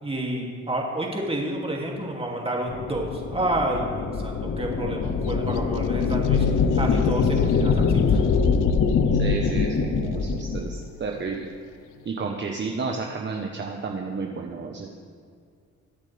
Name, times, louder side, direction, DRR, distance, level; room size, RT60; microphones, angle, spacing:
voice 1, 0.0-8.2, right 1 dB, 20° right, -1 dB, 2.6 m, -29 dB
Slow Sci-Fi Fly By, 2.7-10.7, left 5 dB, 55° left, 0.9 m, -23 dB
sound 1, 5.3-9.6, left 6 dB, 90° left, 0.5 m, -31 dB
voice 2, 9.2-11.5 12.0-14.9, right 4 dB, 40° right, 1 dB, 1.1 m, -31 dB
22.0 x 8.3 x 3.4 m, 2.2 s
cardioid pair, 90°, 30 cm